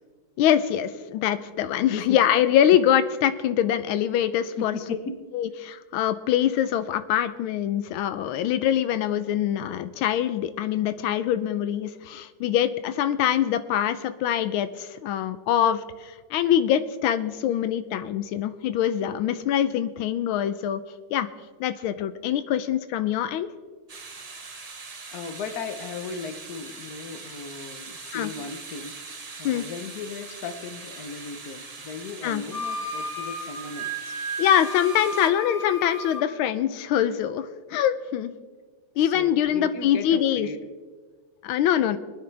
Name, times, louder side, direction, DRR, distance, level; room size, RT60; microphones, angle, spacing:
voice 1, 0.4-4.8 5.3-20.8 21.1-21.3 21.6-23.5 28.1-28.3 29.4-29.6 32.2-32.4 34.4-38.3 39.0-40.5 41.4-42.0, left 10 dB, 90° left, 12 dB, 1.5 m, -24 dB
voice 2, 4.6-5.2 25.1-29.0 29.4-34.2 38.9-40.7, left 5 dB, 55° left, 8 dB, 1.4 m, -36 dB
sound 1, 23.9-35.3, right 4 dB, 75° right, 0.3 m, -42 dB
Wind instrument woodwind instrument, 32.5-36.2, equal, 30° right, 3.3 m, -33 dB
23.0 x 9.8 x 3.3 m, 1.4 s
omnidirectional pair, 2.2 m